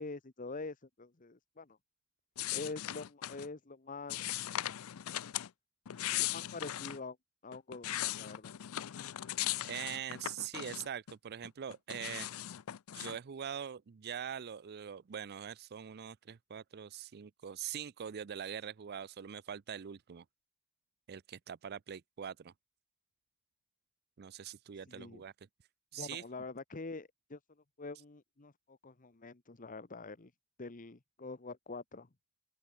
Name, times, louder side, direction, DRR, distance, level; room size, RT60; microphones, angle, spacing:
voice 1, 0.0-1.8 2.5-4.5 6.2-7.2 7.4-8.5 24.9-25.2 26.0-27.4 27.8-30.3 30.6-32.1, left 3 dB, 40° left, 1.1 m, -45 dB
sound 1, 2.4-3.5 4.1-5.5 5.8-7.0 7.5-11.1 11.4-13.2, left 14 dB, 75° left, 0.5 m, -38 dB
voice 2, 9.6-12.3 12.9-20.2 21.1-22.5 24.2-25.3 25.9-26.2, right 8 dB, 50° right, 0.5 m, -43 dB
open air
head